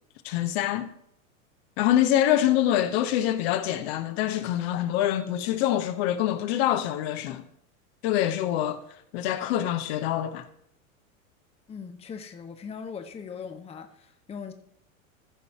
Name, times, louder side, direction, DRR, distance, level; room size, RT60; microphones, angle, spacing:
voice 1, 0.2-0.9 1.8-7.4 8.0-8.8 9.1-10.5, left 12 dB, 45° left, 1.0 m, -25 dB
voice 2, 11.7-14.5, left 6 dB, 15° left, 0.8 m, -40 dB
14.5 x 5.5 x 4.2 m
figure-of-eight pair, 95°, 42 cm